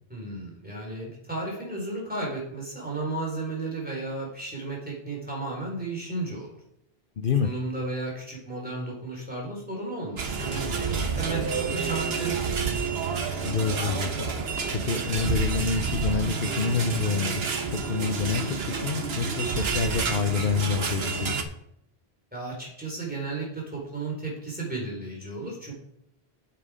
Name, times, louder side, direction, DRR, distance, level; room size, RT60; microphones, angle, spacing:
voice 1, 0.1-6.5 7.4-12.7 22.3-25.7, right 2 dB, 10° right, -3 dB, 4.0 m, -34 dB
voice 2, 7.2-7.5 13.4-14.3 14.7-21.4, left 5 dB, 60° left, 7 dB, 0.8 m, -28 dB
sound 1, 10.2-21.4, right 5 dB, 75° right, 1.2 m, -29 dB
8.7 x 7.5 x 5.0 m, 0.74 s
omnidirectional pair, 1.0 m